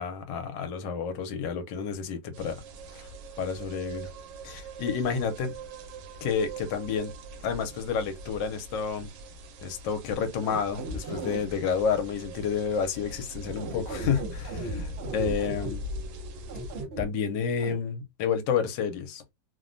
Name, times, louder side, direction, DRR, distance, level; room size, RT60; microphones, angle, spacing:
voice 1, 0.0-2.6 2.9-3.1 3.4-4.1 4.4-5.5 6.2-7.1 7.4-9.1 9.6-15.8 17.0-19.3, left 6 dB, 80° left, 1.3 m, -30 dB
sound 1, 2.3-16.8, right 1 dB, 90° right, 1.4 m, -41 dB
sound 2, 10.1-11.4 13.4-15.7 16.5-17.0 17.6-17.7, right 2 dB, 60° right, 0.6 m, -36 dB
3.2 x 2.1 x 2.5 m
omnidirectional pair, 2.0 m